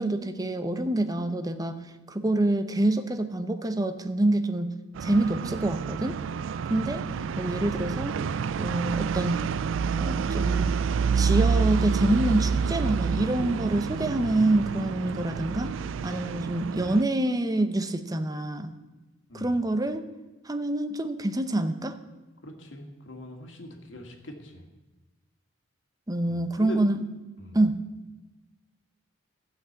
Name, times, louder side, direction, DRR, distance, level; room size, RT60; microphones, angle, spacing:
voice 1, 0.0-1.8 2.1-4.7 5.0-6.2 6.7-7.0 7.4-8.2 8.6-9.5 10.0-10.8 11.1-15.8 16.0-18.7 19.3-20.0 20.4-22.0 26.1-27.1 27.5-27.9, right 1 dB, 20° right, 9 dB, 0.7 m, -26 dB
sound 1, 4.9-17.0, right 6 dB, 70° right, 0.3 m, -28 dB
voice 2, 22.4-24.6 26.3-26.8 27.4-27.6, left 1 dB, 65° left, 3 dB, 2.0 m, -42 dB
13.5 x 6.0 x 8.0 m, 1.2 s
head